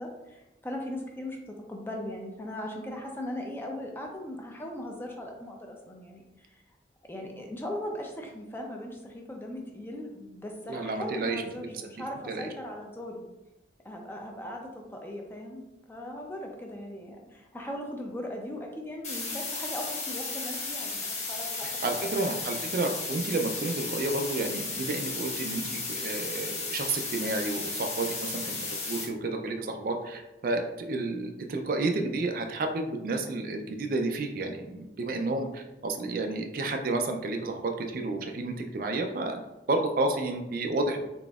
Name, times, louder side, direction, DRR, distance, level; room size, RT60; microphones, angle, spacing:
voice 1, 0.0-6.6 7.1-13.3 13.8-15.6 15.9-22.1, left 1 dB, 10° left, 1 dB, 0.5 m, -39 dB
voice 2, 10.7-11.8 12.3-12.5 21.6-39.4 39.7-41.0, right 2 dB, 50° right, 5 dB, 0.4 m, -31 dB
sound 1, 19.0-29.0, left 3 dB, 40° left, 1.0 m, -34 dB
4.0 x 3.7 x 2.3 m, 1.0 s
head